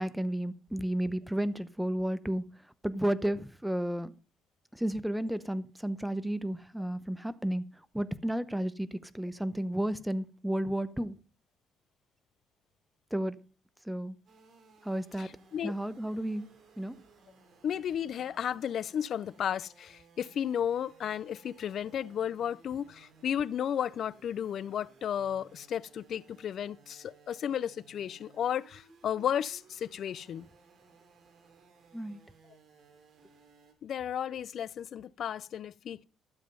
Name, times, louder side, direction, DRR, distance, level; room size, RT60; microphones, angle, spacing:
voice 1, 0.0-2.5 2.8-4.1 4.7-7.6 7.9-11.2 13.1-13.4 13.8-14.2 14.8-15.4 15.6-16.5 16.8-16.9 31.9-32.2, right 1 dB, 5° right, 0.8 m, -32 dB
sound 1, 14.3-33.7, right 4 dB, 50° right, 3.3 m, -60 dB
voice 2, 15.2-15.7 17.6-30.5 33.8-36.0, left 9 dB, 55° left, 0.5 m, -33 dB
12.5 x 7.5 x 5.4 m
cardioid pair, 115°, 0 cm